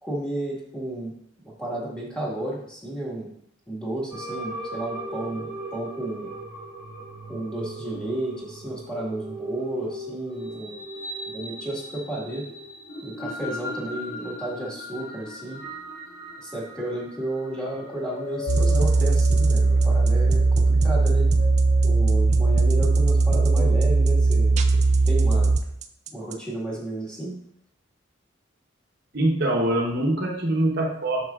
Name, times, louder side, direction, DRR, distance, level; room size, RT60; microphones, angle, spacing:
voice 1, 0.0-1.1 1.4-3.3 3.7-6.3 7.3-10.8 11.3-12.5 13.0-15.6 16.4-21.3 21.8-24.8 25.0-25.6 26.1-27.4, right 1 dB, 5° left, -5 dB, 1.7 m, -32 dB
sound 1, 4.1-23.6, left 1 dB, 90° left, 2.7 m, -38 dB
sound 2, 18.5-26.3, right 3 dB, 35° right, 0.4 m, -19 dB
voice 2, 29.1-31.2, right 1 dB, 55° right, -1 dB, 0.9 m, -23 dB
7.7 x 6.0 x 2.4 m, 0.72 s
head